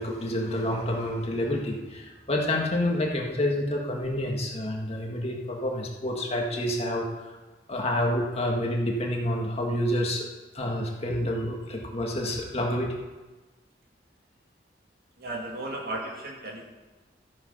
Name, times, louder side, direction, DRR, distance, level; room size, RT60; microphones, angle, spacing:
voice 1, 0.0-7.0 7.7-10.2 10.5-13.0, left 1 dB, 35° left, 0 dB, 1.9 m, -28 dB
voice 2, 15.2-16.6, right 2 dB, 55° right, 0 dB, 2.4 m, -35 dB
13.5 x 8.6 x 5.6 m, 1.2 s
head